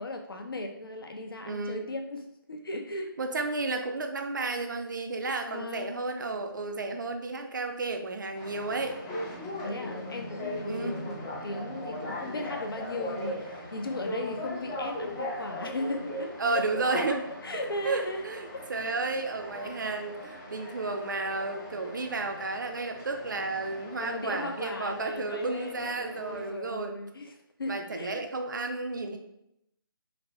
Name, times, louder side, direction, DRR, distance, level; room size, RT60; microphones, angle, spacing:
voice 1, 0.0-3.1 5.4-6.0 9.6-11.2 11.4-16.6 16.9-17.2 17.4-18.2 18.5-18.6 24.0-28.2, left 2 dB, 70° left, 4 dB, 0.5 m, -37 dB
voice 2, 1.5-1.9 3.2-9.0 10.7-11.0 16.4-17.3 17.5-26.9 27.7-29.2, right 3 dB, 55° right, 5 dB, 0.4 m, -32 dB
sound 1, 8.3-26.5, left 1 dB, 15° left, 0.5 m, -39 dB
3.3 x 2.1 x 2.6 m, 0.81 s
figure-of-eight pair, 150°, 12 cm